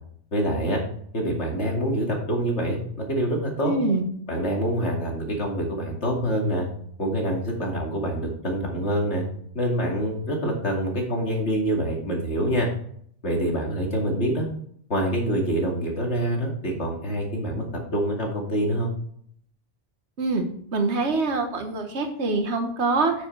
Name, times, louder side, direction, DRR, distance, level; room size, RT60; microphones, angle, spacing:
voice 1, 0.3-0.8 1.1-3.7 4.3-6.7 7.0-9.3 9.5-12.7 13.2-14.5 14.9-17.7 17.9-18.9, right 1 dB, 75° left, -1 dB, 2.7 m, -26 dB
voice 2, 3.6-4.0 20.2-20.4 20.7-23.1, right 3 dB, 70° right, 5 dB, 1.6 m, -24 dB
8.8 x 8.5 x 3.3 m, 0.62 s
omnidirectional pair, 1.2 m